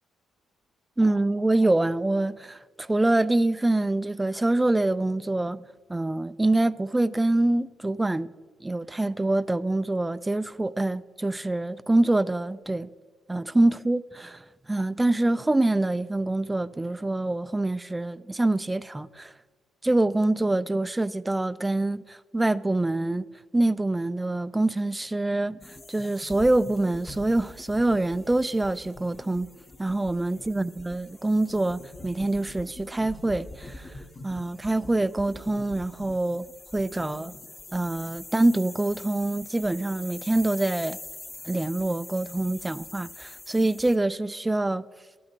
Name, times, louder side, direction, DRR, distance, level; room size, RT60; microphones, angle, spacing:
voice 1, 1.0-5.6 5.9-8.3 8.6-12.9 13.3-19.3 19.8-23.3 23.5-29.5 29.8-33.9 34.2-36.5 36.7-37.3 37.7-41.0 41.4-44.9, right 2 dB, 15° right, 0.3 m, -25 dB
sound 1, 25.6-44.0, left 2 dB, 30° left, 1.0 m, -44 dB
12.0 x 8.7 x 4.4 m
cardioid pair, 90°, 0 cm